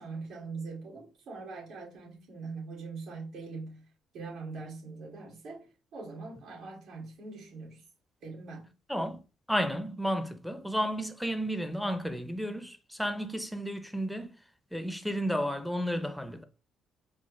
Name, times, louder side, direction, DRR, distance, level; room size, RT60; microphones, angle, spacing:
voice 1, 0.0-3.9 4.1-7.8 8.2-8.7, right 4 dB, 65° right, 2.0 m, -42 dB
voice 2, 8.9-9.2 9.5-14.3 14.7-16.4, equal, ahead, 0.6 m, -32 dB
4.5 x 2.0 x 3.1 m
hypercardioid pair, 50°, 0 cm